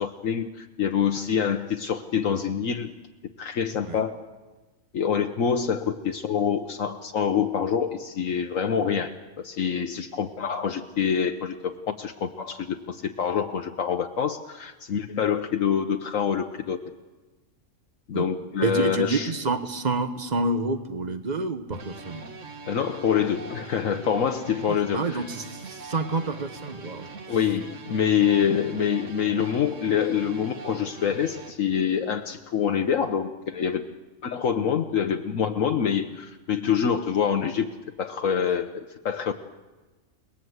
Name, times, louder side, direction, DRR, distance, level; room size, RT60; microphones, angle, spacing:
voice 1, 0.0-2.9 3.4-4.2 4.9-16.8 18.1-19.3 22.7-25.2 27.3-33.8 34.2-37.7 38.0-39.3, left 7 dB, 70° left, 6 dB, 1.4 m, -26 dB
voice 2, 18.6-22.2 24.7-27.1, right 3 dB, 35° right, 9 dB, 1.4 m, -28 dB
sound 1, 21.7-31.5, right 3 dB, 60° right, 2.2 m, -42 dB
29.5 x 20.0 x 8.0 m, 1.2 s
omnidirectional pair, 1.4 m